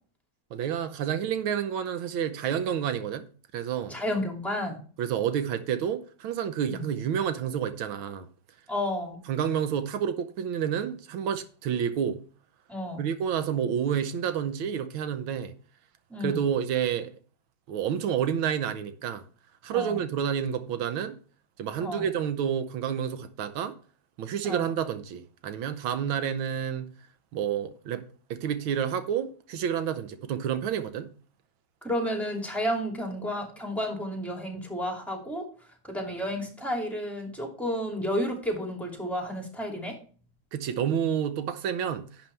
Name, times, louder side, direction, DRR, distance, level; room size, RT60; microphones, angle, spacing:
voice 1, 0.5-3.3 3.5-4.0 5.0-8.3 9.3-12.2 13.0-15.5 16.2-17.1 17.7-19.2 19.6-21.2 21.6-23.7 24.2-26.9 27.3-28.0 28.3-31.1 40.5-42.1, right 8 dB, 85° right, 1.7 m, -29 dB
voice 2, 3.9-4.8 6.7-6.8 8.7-9.2 12.7-13.1 16.1-16.4 19.7-20.0 21.8-22.1 24.4-24.7 31.8-35.5 35.9-40.0, equal, ahead, 2.4 m, -31 dB
11.0 x 7.5 x 3.3 m
omnidirectional pair, 2.2 m